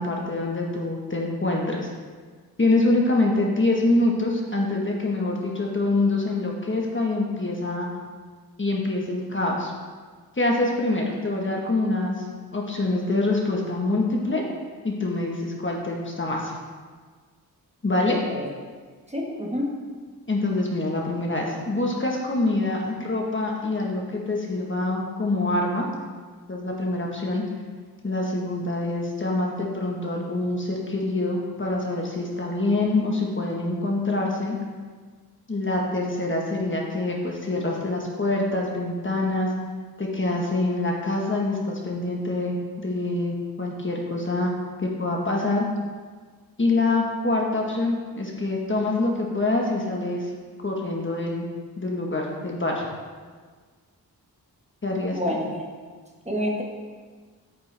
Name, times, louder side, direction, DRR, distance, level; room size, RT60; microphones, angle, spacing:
voice 1, 0.0-1.9 2.6-7.9 8.6-9.7 10.3-12.3 12.5-14.4 14.8-16.5 17.8-18.2 20.3-25.9 26.5-27.4 28.0-34.6 35.5-39.5 40.0-44.5 44.8-45.6 46.6-50.3 50.6-51.5 51.8-52.9 54.8-55.2, left 2 dB, 30° left, -1 dB, 1.3 m, -25 dB
voice 2, 19.1-19.7 55.1-55.6 56.2-56.6, left 1 dB, 15° right, -2 dB, 1.5 m, -28 dB
8.9 x 6.8 x 3.4 m, 1.5 s
cardioid pair, 65°, 38 cm